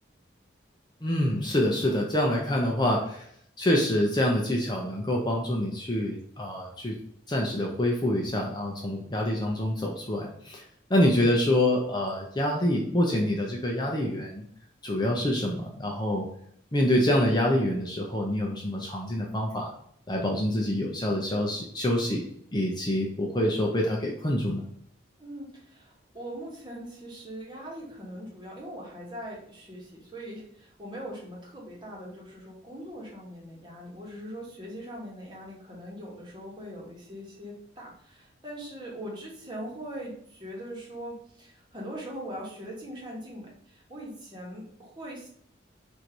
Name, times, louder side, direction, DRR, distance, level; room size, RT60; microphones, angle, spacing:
voice 1, 1.0-3.3 3.6-6.9 7.3-10.6 10.9-14.4 14.8-16.3 16.7-19.7 20.1-22.2 22.5-24.6, left 1 dB, 20° left, -1 dB, 0.6 m, -26 dB
voice 2, 25.2-45.3, equal, 25° right, -3 dB, 1.4 m, -41 dB
4.5 x 2.6 x 4.5 m, 0.66 s
head